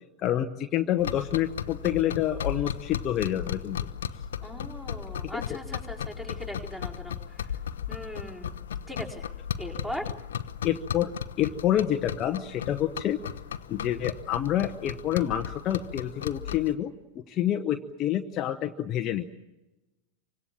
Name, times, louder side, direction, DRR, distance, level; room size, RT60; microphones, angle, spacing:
voice 1, 0.2-3.8 5.3-5.6 10.6-11.1 11.4-13.2 13.7-19.3, left 11 dB, 30° left, 5 dB, 1.0 m, -28 dB
sound 1, 1.0-16.7, left 9 dB, 65° left, 0.9 m, -36 dB
voice 2, 4.4-7.5 7.9-8.6 8.9-9.2 9.6-10.1, equal, 10° right, 0 dB, 4.4 m, -39 dB
27.5 x 25.0 x 7.4 m, 1.0 s
figure-of-eight pair, 90°, 0 cm